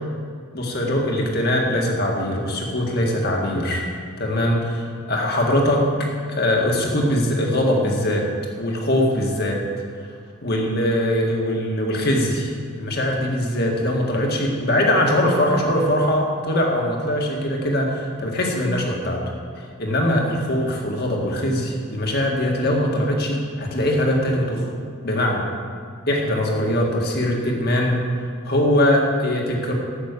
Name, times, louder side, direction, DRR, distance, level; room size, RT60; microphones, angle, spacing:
voice 1, 0.5-3.9 4.2-8.3 8.6-9.6 10.4-19.2 19.6-24.7 25.0-25.5 26.1-28.0 28.4-29.7, left 1 dB, 45° left, 0 dB, 1.9 m, -22 dB
11.5 x 8.4 x 6.7 m, 2.1 s
head